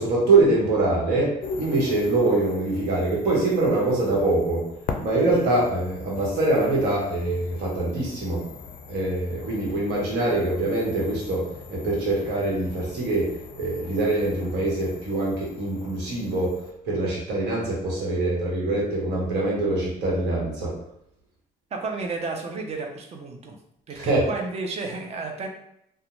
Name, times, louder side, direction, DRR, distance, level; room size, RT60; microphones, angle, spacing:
voice 1, 0.0-4.7 5.0-8.4 8.9-20.8 24.0-24.2, right 2 dB, 80° right, -4 dB, 1.1 m, -24 dB
sound 1, 1.4-16.7, left 5 dB, 55° left, 0.4 m, -41 dB
voice 2, 21.7-23.6 23.9-25.5, right 3 dB, 40° right, 2 dB, 0.5 m, -32 dB
2.4 x 2.1 x 3.0 m, 0.76 s
cardioid pair, 110°, 17 cm